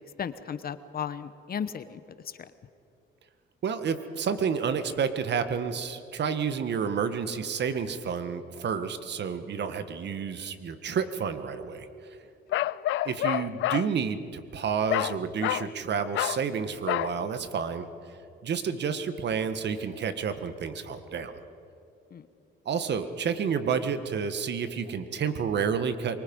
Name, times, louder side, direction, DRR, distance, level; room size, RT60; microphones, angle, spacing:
voice 1, 0.0-2.5 22.1-22.3, left 7 dB, 50° left, 12 dB, 1.1 m, -36 dB
voice 2, 3.6-12.2 13.0-17.9 18.4-21.3 22.6-26.2, right 6 dB, 60° right, 10 dB, 1.6 m, -30 dB
Bark, 12.5-13.9 14.9-15.2 15.4-15.7 16.1-16.4 16.9-17.1, left 15 dB, 75° left, 0.4 m, -28 dB
25.0 x 23.5 x 5.5 m, 2.7 s
cardioid pair, 90°, 20 cm